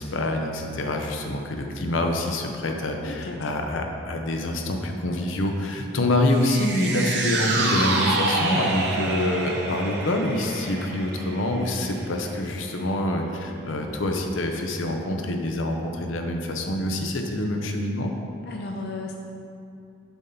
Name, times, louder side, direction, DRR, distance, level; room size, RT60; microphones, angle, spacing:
voice 1, 0.0-18.1, left 1 dB, 85° left, 3 dB, 0.7 m, -26 dB
voice 2, 3.1-3.5 18.5-19.2, left 3 dB, 55° left, 1 dB, 0.4 m, -35 dB
sound 1, 6.3-12.8 13.1-13.2, right 2 dB, 60° right, 0.9 m, -28 dB
7.0 x 3.9 x 5.6 m, 2.6 s
head